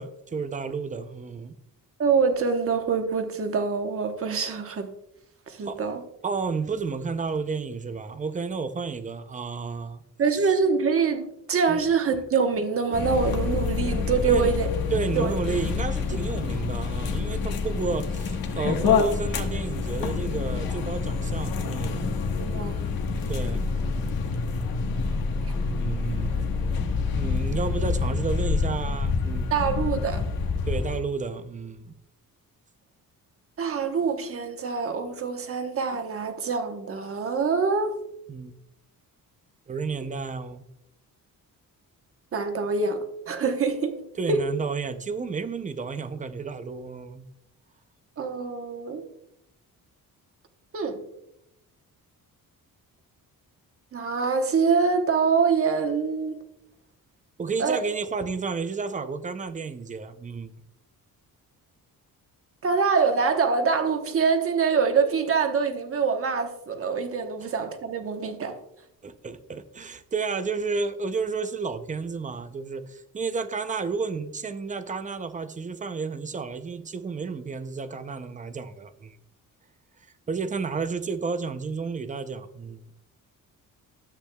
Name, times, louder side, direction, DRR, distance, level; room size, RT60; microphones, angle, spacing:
voice 1, 0.0-1.5 5.6-5.8 6.2-10.0 11.7-11.8 14.2-14.5 14.9-22.0 23.3-23.7 25.7-26.5 27.1-29.5 30.7-31.9 38.3-38.5 39.7-40.6 44.2-47.3 57.4-60.6 69.0-79.2 80.3-82.8, right 4 dB, 20° right, 0.5 m, -31 dB
voice 2, 2.0-4.9 5.5-6.0 10.2-14.7 15.1-15.3 16.1-16.2 22.3-22.8 29.5-30.2 33.6-37.9 42.3-43.9 44.3-44.4 48.2-49.0 50.7-51.0 53.9-56.4 57.6-57.8 62.6-68.6, right 5 dB, 40° right, 1.0 m, -25 dB
sound 1, 12.9-31.0, left 5 dB, 80° left, 1.3 m, -27 dB
13.5 x 8.2 x 2.2 m
cardioid pair, 160°, 35 cm